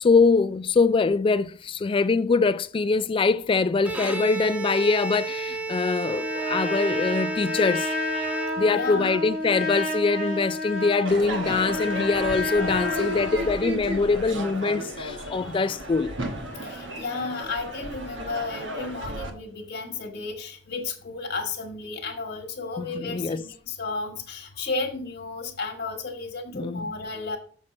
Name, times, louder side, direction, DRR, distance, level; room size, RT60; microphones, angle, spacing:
voice 1, 0.0-7.9 8.6-16.1 22.8-23.4 26.5-26.9, left 4 dB, 30° left, 0.3 m, -23 dB
Bowed string instrument, 3.8-9.0, right 4 dB, 5° right, 0.6 m, -32 dB
Trumpet, 6.0-13.7, left 2 dB, 50° right, 2.8 m, -30 dB
voice 2, 8.6-9.2 16.6-27.4, left 3 dB, 60° left, 1.4 m, -33 dB
Crowd / Fireworks, 11.0-19.3, equal, 85° right, 1.2 m, -33 dB
6.4 x 5.9 x 4.2 m
head